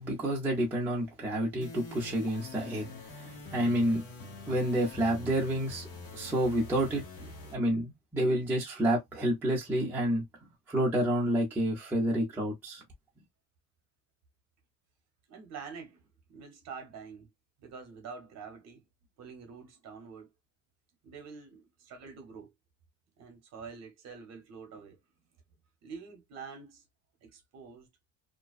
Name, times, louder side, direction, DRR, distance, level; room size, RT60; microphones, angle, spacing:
voice 1, 0.0-5.9 6.1-10.2 10.7-12.8, right 1 dB, 5° right, 0.5 m, -29 dB
sound 1, 1.6-7.6, left 3 dB, 70° left, 1.1 m, -45 dB
voice 2, 15.3-17.3 17.6-18.8 19.2-20.3 21.0-22.5 23.2-25.0 25.8-26.8 27.2-27.9, right 5 dB, 45° right, 0.8 m, -46 dB
2.5 x 2.1 x 2.3 m
cardioid pair, 180°, 38 cm